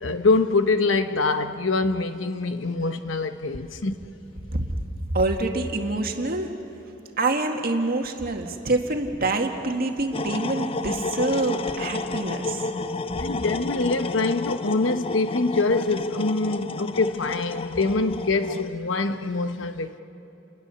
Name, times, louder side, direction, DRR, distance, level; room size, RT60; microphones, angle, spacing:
voice 1, 0.0-4.0 13.2-20.0, left 3 dB, 75° left, 1.0 m, -24 dB
voice 2, 4.5-4.8 5.1-6.5 7.2-12.6, right 2 dB, 50° right, 1.8 m, -26 dB
sound 1, 10.1-18.7, left 3 dB, 30° left, 0.5 m, -31 dB
29.0 x 20.5 x 7.0 m
head